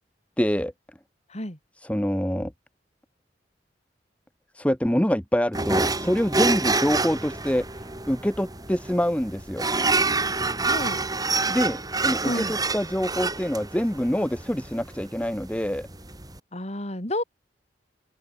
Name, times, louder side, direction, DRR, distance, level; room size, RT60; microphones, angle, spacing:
voice 1, 0.4-0.7 1.8-2.5 4.5-7.7 8.1-9.7 11.5-15.9, equal, 10° left, 1.4 m, -25 dB
sound 1, 5.5-16.4, right 3 dB, 20° right, 6.5 m, -27 dB
voice 2, 10.6-11.1 12.2-12.5 16.5-17.2, left 1 dB, 40° left, 6.1 m, -30 dB
open air
head